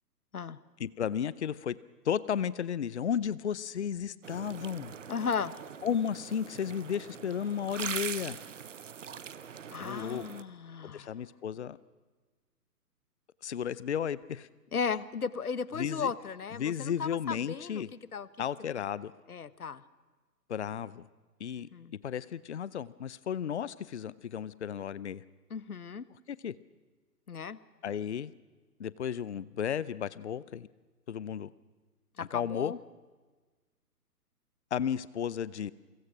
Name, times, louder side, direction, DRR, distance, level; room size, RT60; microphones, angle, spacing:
voice 1, 0.8-1.8 2.0-4.9 5.8-8.4 9.8-10.3 10.8-11.8 13.4-14.5 15.8-16.1 16.6-17.9 18.4-19.1 20.5-21.1 21.4-21.7 22.0-25.2 26.3-26.5 27.8-28.3 28.8-30.7 31.1-31.5 32.3-32.7 34.7-35.7, left 8 dB, 45° left, 19 dB, 0.8 m, -33 dB
sound 1, 4.2-10.4, right 7 dB, 50° right, 1.2 m, -42 dB
voice 2, 5.1-5.5 9.7-11.1 14.7-18.3 19.3-19.8 21.7-21.9 25.5-26.0 27.3-27.6 32.2-32.8, left 6 dB, 65° left, 17 dB, 1.2 m, -35 dB
28.5 x 24.0 x 6.0 m, 1.3 s
figure-of-eight pair, 130°, 48 cm